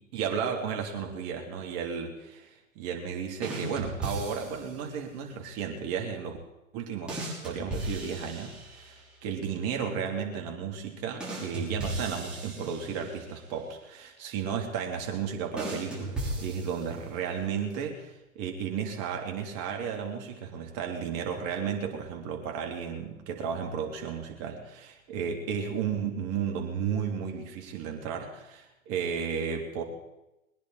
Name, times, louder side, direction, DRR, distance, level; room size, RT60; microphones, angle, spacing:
voice 1, 0.1-6.4 6.7-7.2 7.4-29.8, right 7 dB, 35° right, 2 dB, 3.0 m, -33 dB
sound 1, 3.4-4.8 7.1-9.0 11.2-13.3 15.6-17.2, right 2 dB, ahead, 5.8 m, -36 dB
22.5 x 10.0 x 4.9 m, 0.97 s
hypercardioid pair, 115°, 41 cm